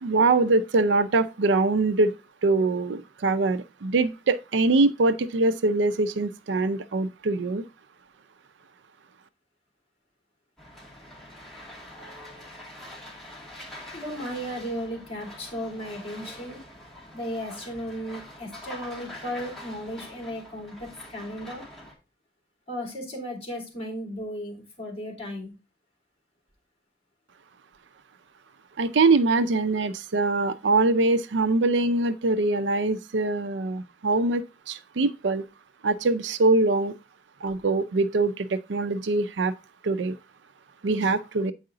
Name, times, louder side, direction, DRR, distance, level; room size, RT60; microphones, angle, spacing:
voice 1, 0.0-2.1 2.4-7.6 28.8-34.4 34.7-35.4 35.8-36.9 37.4-39.5 39.8-40.2 40.8-41.5, right 3 dB, 70° right, 0.5 m, -23 dB
sound 1, 10.6-21.9, left 1 dB, ahead, 2.2 m, -44 dB
voice 2, 13.9-16.6 17.1-21.6 22.7-25.5, equal, 35° left, 2.9 m, -35 dB
7.8 x 4.8 x 3.8 m
head